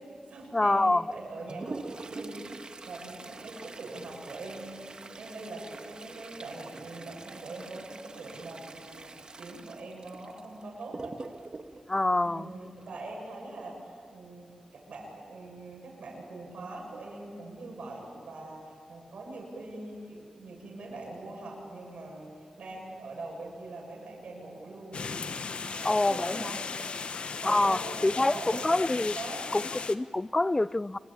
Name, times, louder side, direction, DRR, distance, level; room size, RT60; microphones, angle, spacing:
voice 1, 0.0-9.1 9.4-11.4 12.2-25.4 25.6-26.8 27.4-29.4, right 2 dB, 85° right, -1 dB, 7.6 m, -43 dB
voice 2, 0.5-1.1 11.9-12.5 25.8-26.5 27.4-29.1 29.5-31.0, left 2 dB, 20° left, 18 dB, 0.6 m, -26 dB
Toilet flush, 1.1-13.1 14.9-15.0 15.4-15.5 16.3-16.4 17.0-17.3 17.7-17.8, right 3 dB, 45° right, 1.6 m, -45 dB
sound 1, 24.9-29.9, left 5 dB, 70° left, 1.3 m, -36 dB
27.5 x 24.5 x 8.8 m, 2.3 s
wide cardioid pair, 85°, 2 cm